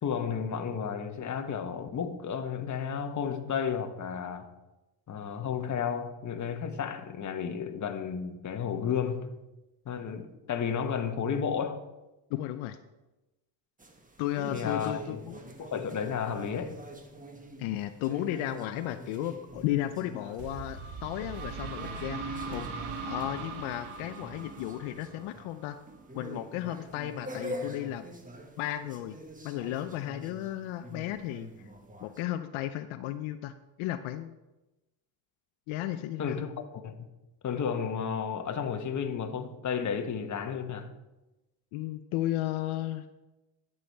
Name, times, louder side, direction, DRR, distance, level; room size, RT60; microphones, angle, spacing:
voice 1, 0.0-4.5 5.1-9.4 9.8-11.8 14.5-15.2 15.6-16.8 36.2-36.5 36.8-37.0 37.4-40.9, left 7 dB, 35° left, 1.2 m, -32 dB
voice 2, 12.3-12.8 14.2-15.5 17.6-22.7 23.0-25.8 26.1-28.0 28.6-29.2 29.4-31.5 32.0-34.4 35.7-36.4 41.7-43.1, left 13 dB, 75° left, 0.7 m, -34 dB
sound 1, 13.8-32.2, equal, 15° right, 1.3 m, -45 dB
sound 2, 20.4-26.0, right 4 dB, 80° right, 1.4 m, -40 dB
11.5 x 7.1 x 4.6 m
supercardioid pair, 95°, 48 cm